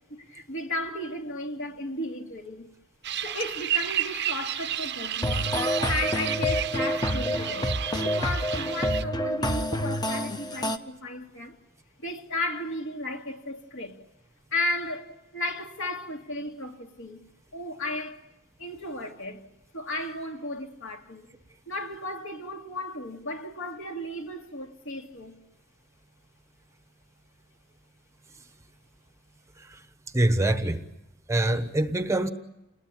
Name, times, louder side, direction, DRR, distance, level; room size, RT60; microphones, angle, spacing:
voice 1, 0.1-2.7 3.2-5.5 5.9-7.7 8.0-11.6 12.0-14.0 14.5-17.2 17.5-18.3 18.6-19.4 19.7-21.3 21.7-25.4, left 1 dB, 55° left, 2.7 m, -34 dB
sound 1, 3.0-9.0, right 11 dB, 50° right, 0.9 m, -32 dB
sound 2, 5.2-10.8, equal, 20° left, 1.1 m, -28 dB
voice 2, 30.1-30.8 31.3-32.3, right 1 dB, 15° right, 1.0 m, -25 dB
29.0 x 20.5 x 8.9 m
head